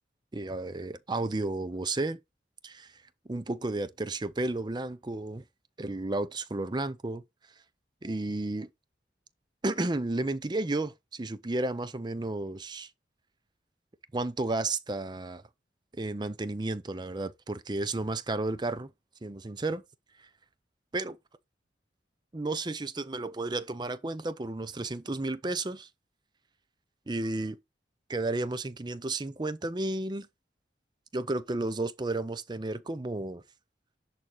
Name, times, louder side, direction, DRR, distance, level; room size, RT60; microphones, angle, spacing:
voice 1, 0.3-2.2 2.6-2.9 3.3-5.4 5.8-7.2 8.0-8.7 9.6-12.9 14.1-15.4 15.9-18.9 19.2-19.8 20.2-20.3 20.9-21.2 22.3-25.9 27.1-27.6 28.1-30.3 31.1-33.4, right 2 dB, 25° right, 0.5 m, -32 dB
11.0 x 4.2 x 3.8 m
head